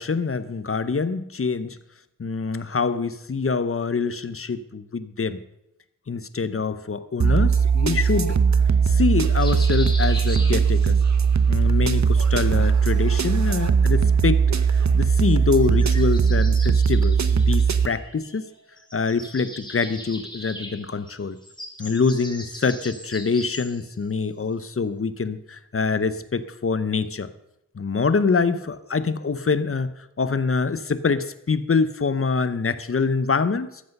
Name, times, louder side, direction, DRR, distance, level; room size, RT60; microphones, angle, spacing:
voice 1, 0.0-1.8 2.2-5.4 6.1-8.4 8.9-11.0 11.5-14.4 14.7-18.5 18.9-21.4 21.8-27.3 27.7-29.9 30.2-33.8, left 4 dB, 45° left, 13 dB, 0.8 m, -25 dB
sound 1, 7.2-17.9, right 6 dB, 60° right, 0.8 m, -19 dB
sound 2, 9.4-11.1 12.5-13.6 15.5-18.5 18.8-23.9, left 1 dB, 15° left, 2.6 m, -40 dB
13.5 x 8.2 x 5.4 m, 0.82 s
wide cardioid pair, 75°, 32 cm